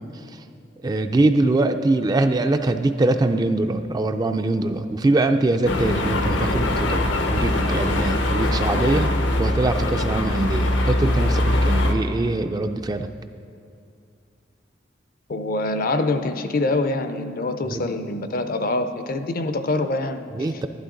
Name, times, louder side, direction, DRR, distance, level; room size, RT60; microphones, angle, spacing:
voice 1, 0.8-9.1 9.4-13.1 17.6-17.9 20.3-20.7, right 2 dB, 20° right, 7 dB, 0.3 m, -23 dB
sound 1, 5.6-11.9, left 1 dB, 75° left, 0.8 m, -22 dB
voice 2, 15.3-20.2, left 2 dB, 50° left, 10 dB, 0.5 m, -25 dB
11.5 x 11.0 x 3.8 m, 2.4 s
head